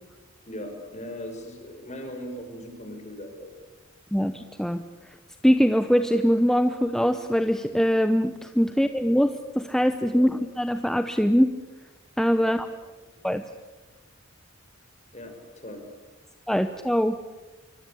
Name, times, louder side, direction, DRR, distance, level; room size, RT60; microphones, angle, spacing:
voice 1, 0.5-3.5 10.1-10.3 12.4-12.6 15.1-15.8, equal, 35° left, 4 dB, 6.2 m, -39 dB
voice 2, 4.1-4.8 5.4-10.3 10.6-11.5 12.2-12.7 13.2-13.4 16.5-17.2, equal, ahead, 9 dB, 0.8 m, -22 dB
26.0 x 24.5 x 8.6 m, 1.2 s
head